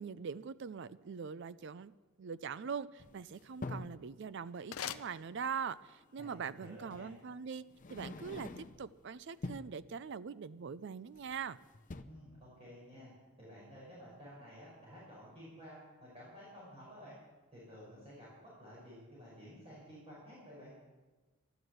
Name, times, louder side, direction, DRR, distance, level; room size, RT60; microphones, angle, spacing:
voice 1, 0.0-1.9 2.2-7.6 7.9-11.6, right 6 dB, 55° right, 16 dB, 0.4 m, -42 dB
sound 1, 3.0-4.0 5.7-5.8 6.9-7.1 7.7-8.9 9.3-9.8 11.1-11.5 11.7-12.0, left 2 dB, 40° left, 0.7 m, -45 dB
sound 2, 3.9-5.9, left 9 dB, 85° left, 0.6 m, -46 dB
voice 2, 6.2-7.1 12.1-17.2 17.5-20.7, equal, 30° right, -7 dB, 5.8 m, -53 dB
12.5 x 12.0 x 7.9 m, 1.2 s
head